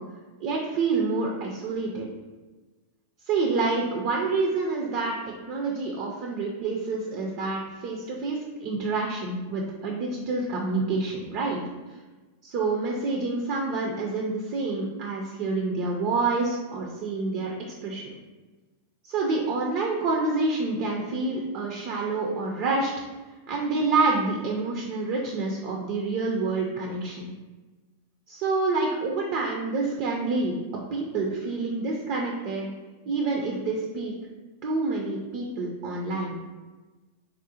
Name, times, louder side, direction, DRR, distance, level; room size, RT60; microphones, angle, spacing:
voice 1, 0.4-2.1 3.3-5.2 5.5-11.6 12.4-17.5 17.8-18.0 19.0-22.9 23.5-27.3 28.3-30.6 30.9-32.7 33.1-34.1 34.6-36.4, right 3 dB, 50° right, -1 dB, 0.5 m, -27 dB
3.6 x 2.0 x 2.8 m, 1.2 s
hypercardioid pair, 100°, 0 cm